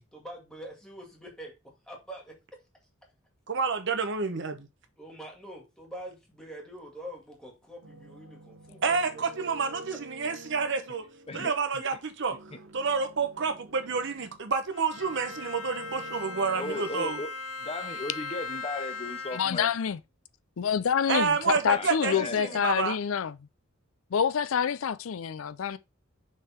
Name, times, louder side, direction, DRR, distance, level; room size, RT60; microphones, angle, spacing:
voice 1, 0.1-1.6 1.8-2.4 5.0-9.3 9.9-10.0, right 1 dB, 5° left, 2.1 m, -44 dB
voice 2, 3.5-4.7 8.8-11.0 11.3-11.9 12.2-12.3 12.7-17.2 21.1-23.0, right 5 dB, 60° right, 1.0 m, -29 dB
sound 1, 7.8-14.5 14.9-17.1, equal, 85° right, 1.0 m, -48 dB
Bowed string instrument, 14.7-19.8, left 3 dB, 85° left, 1.4 m, -39 dB
voice 3, 16.6-17.3 17.6-19.7 21.7-22.6, left 2 dB, 30° left, 0.7 m, -36 dB
voice 4, 19.3-20.0 20.6-23.3 24.1-25.8, left 7 dB, 70° left, 0.4 m, -27 dB
6.4 x 3.8 x 4.4 m
head